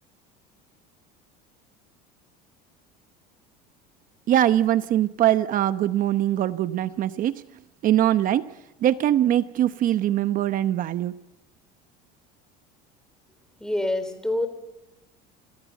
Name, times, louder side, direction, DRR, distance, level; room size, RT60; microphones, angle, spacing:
voice 1, 4.3-7.4 7.8-8.5 8.8-11.1, right 12 dB, 45° right, 0.9 m, -22 dB
voice 2, 13.6-14.5, left 1 dB, 5° left, 4.1 m, -26 dB
27.5 x 18.0 x 8.2 m
supercardioid pair, 120°, 20 cm